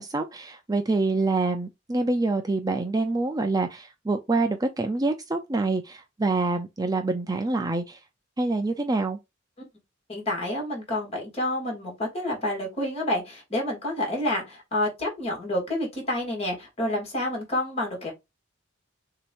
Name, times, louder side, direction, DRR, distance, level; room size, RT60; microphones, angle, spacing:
voice 1, 0.0-8.0 8.4-9.2, right 3 dB, 20° right, 0.5 m, -26 dB
voice 2, 10.1-18.1, left 1 dB, 35° left, 2.9 m, -29 dB
6.5 x 2.9 x 2.6 m
head